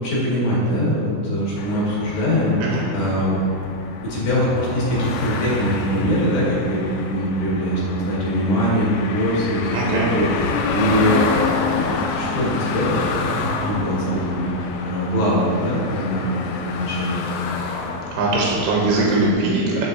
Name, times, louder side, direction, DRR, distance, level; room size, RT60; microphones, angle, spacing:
voice 1, 0.0-3.4 4.0-11.2 11.5-17.2, equal, 60° left, -6 dB, 2.3 m, -22 dB
sound 1, 1.6-19.3, left 4 dB, 85° left, 2.2 m, -28 dB
voice 2, 9.7-10.1 18.1-19.9, right 2 dB, 85° right, -3 dB, 2.9 m, -20 dB
6.8 x 6.3 x 2.6 m, 2.4 s
omnidirectional pair, 4.9 m